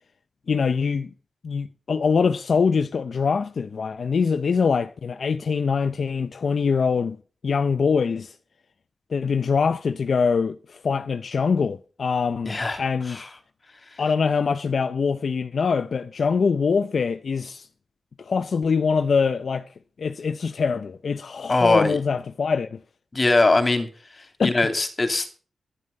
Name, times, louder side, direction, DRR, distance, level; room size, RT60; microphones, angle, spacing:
voice 1, 0.5-1.1 1.4-7.2 7.4-8.4 9.1-13.3 14.0-17.7 18.2-19.7 20.0-22.8 24.4-24.5, left 5 dB, 60° left, 0.7 m, -23 dB
voice 2, 12.5-12.8 13.1-13.2 21.5-22.0 23.1-23.9 24.4-25.3, left 2 dB, 30° left, 2.8 m, -20 dB
11.0 x 11.0 x 5.4 m
wide cardioid pair, 120°, 0 cm